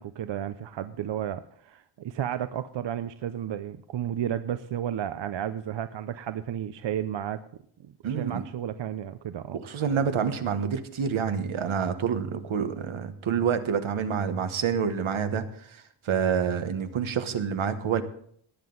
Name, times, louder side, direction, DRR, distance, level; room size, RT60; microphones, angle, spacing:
voice 1, 0.0-7.4 8.1-9.6, right 10 dB, 65° right, 11 dB, 0.6 m, -32 dB
voice 2, 8.0-8.4 9.5-18.0, right 7 dB, 85° right, 9 dB, 1.2 m, -28 dB
18.5 x 7.8 x 3.9 m, 0.62 s
wide cardioid pair, 125°, 47 cm